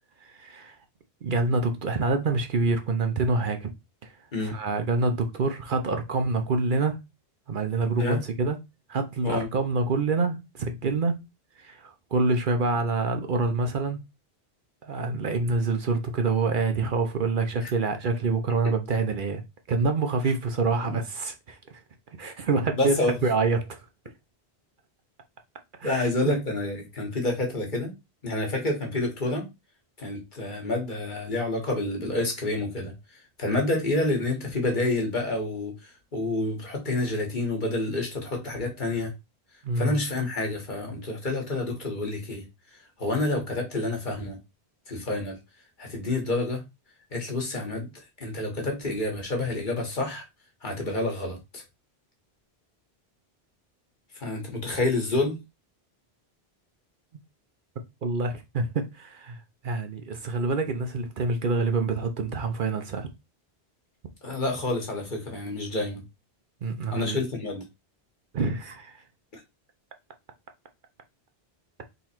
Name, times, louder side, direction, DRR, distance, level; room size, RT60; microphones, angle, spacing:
voice 1, 0.2-0.8 1.2-3.7 4.0-7.0 7.5-8.6 8.9-11.3 11.6-14.0 14.8-19.4 19.7-21.8 22.2-23.9 25.8-26.1 39.6-40.0 58.0-63.1 66.6-67.2 68.3-69.0, right 3 dB, 60° right, 0.8 m, -26 dB
voice 2, 22.8-23.1 25.8-27.9 28.2-29.5 30.0-32.9 33.4-39.1 39.7-42.4 43.0-44.4 44.9-45.4 45.8-46.6 47.1-50.2 50.6-51.6 54.2-55.4 64.2-66.0 66.9-67.6 69.3-69.4, left 2 dB, 50° left, 1.6 m, -28 dB
3.9 x 3.1 x 4.3 m
omnidirectional pair, 1.1 m